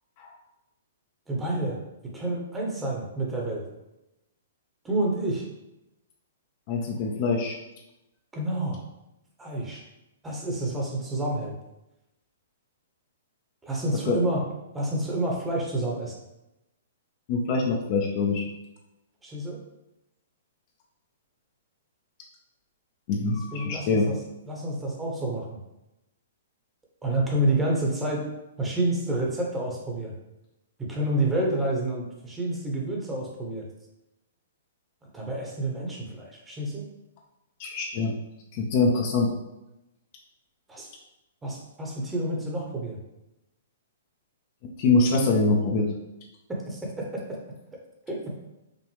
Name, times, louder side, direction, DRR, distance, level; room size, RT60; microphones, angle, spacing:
voice 1, 1.3-1.8 2.1-3.6 4.8-5.5 8.3-8.8 9.4-9.8 10.2-11.5 13.6-14.4 14.7-16.1 19.2-19.6 23.5-24.2 24.4-25.5 27.0-28.3 28.6-30.1 30.8-33.6 35.1-36.8 40.7-40.9 41.4-43.0 46.5-47.4 48.1-48.3, right 1 dB, 10° right, -2 dB, 1.0 m, -29 dB
voice 2, 6.7-7.5 14.0-14.3 17.3-18.5 23.1-24.1 37.6-38.1 38.5-39.3 44.8-45.9, left 3 dB, 40° left, 0 dB, 0.7 m, -24 dB
5.1 x 2.5 x 3.2 m, 0.92 s
figure-of-eight pair, 115°, 0 cm